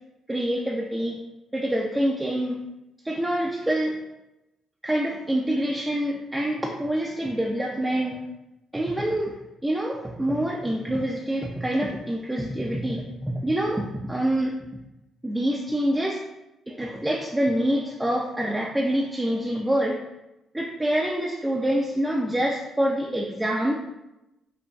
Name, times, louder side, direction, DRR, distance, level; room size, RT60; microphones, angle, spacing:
voice 1, 0.3-1.2 1.5-2.6 3.0-4.0 4.8-8.2 8.7-9.4 9.6-14.5 15.2-16.2 16.7-20.0 20.5-23.7, right 1 dB, 10° right, -2 dB, 0.4 m, -26 dB
4.9 x 2.2 x 2.3 m, 0.95 s
cardioid pair, 90°, 0 cm